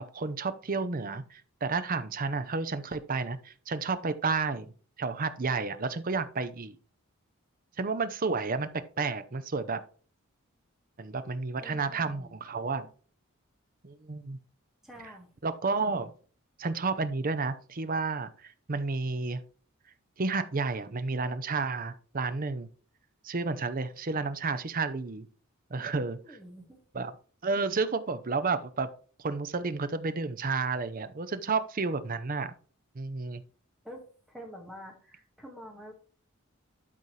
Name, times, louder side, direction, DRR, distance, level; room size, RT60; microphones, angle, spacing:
voice 1, 0.0-4.7 5.0-6.8 7.8-8.7 9.0-9.8 11.0-12.9 13.8-14.4 15.4-16.1 16.6-19.4 20.2-22.7 23.2-25.3 25.7-26.4 26.9-27.1 27.4-28.9 29.2-32.5 32.9-33.4, right 4 dB, 40° right, 12 dB, 0.6 m, -31 dB
voice 2, 11.6-12.3 14.8-15.3 25.9-26.8 33.8-35.9, equal, ahead, 0 dB, 1.8 m, -47 dB
12.0 x 4.1 x 3.3 m, 0.40 s
head